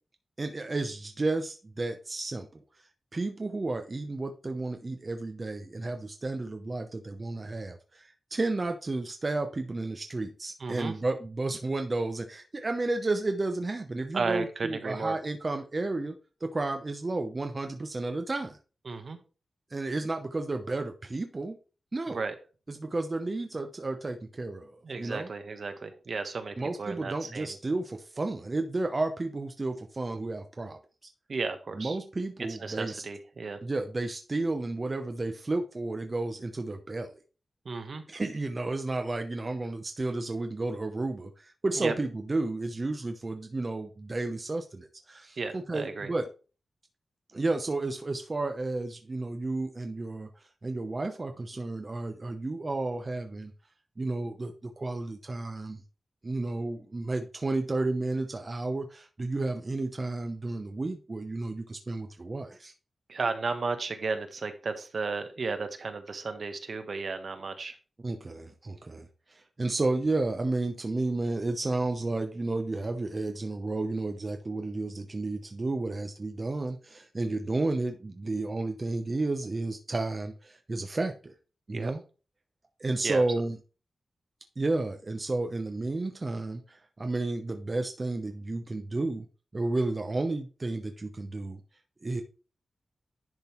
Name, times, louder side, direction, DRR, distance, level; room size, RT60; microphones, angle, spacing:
voice 1, 0.4-2.6 3.1-16.2 16.4-18.6 19.7-21.6 21.9-22.2 22.7-24.7 25.0-25.3 26.6-30.8 31.7-33.0 33.6-37.1 38.1-46.3 47.3-50.3 50.6-53.5 54.0-55.8 56.2-62.7 68.0-81.3 81.7-82.0 82.8-83.6 84.6-89.3 89.5-91.6 92.0-92.2, right 2 dB, 30° right, 6 dB, 0.8 m, -32 dB
voice 2, 10.6-10.9 14.1-15.2 18.9-19.2 22.1-22.3 24.8-27.6 31.3-32.0 32.5-33.6 37.6-38.0 41.7-41.9 45.4-46.1 63.1-67.7 81.7-81.9 83.0-83.2, right 4 dB, 60° right, 8 dB, 1.2 m, -34 dB
10.5 x 3.9 x 4.5 m, 0.35 s
wide cardioid pair, 115°, 0 cm